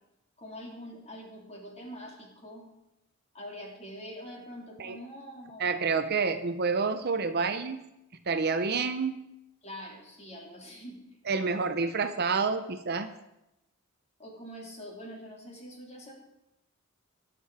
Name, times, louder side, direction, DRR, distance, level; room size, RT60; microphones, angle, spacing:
voice 1, 0.4-2.7 3.3-6.0 9.6-11.7 14.2-16.1, equal, 30° left, -1 dB, 3.2 m, -44 dB
voice 2, 5.6-7.8 8.3-9.2 11.3-13.1, right 4 dB, 45° right, 9 dB, 0.7 m, -28 dB
21.5 x 7.6 x 4.8 m, 0.88 s
head